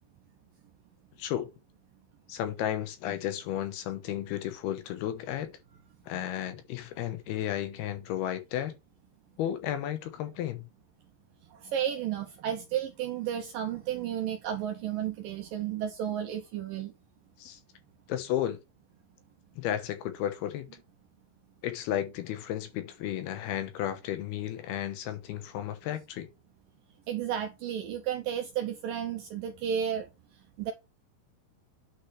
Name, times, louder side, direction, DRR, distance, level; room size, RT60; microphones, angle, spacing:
voice 1, 1.2-1.5 2.3-5.5 6.1-8.8 9.4-10.7 17.4-17.6 18.1-18.6 19.6-20.7 21.6-26.3, left 11 dB, 75° left, 2.8 m, -33 dB
voice 2, 11.5-16.9 27.1-30.1 30.6-30.7, right 9 dB, 75° right, 2.1 m, -32 dB
9.4 x 5.9 x 3.2 m
omnidirectional pair, 4.9 m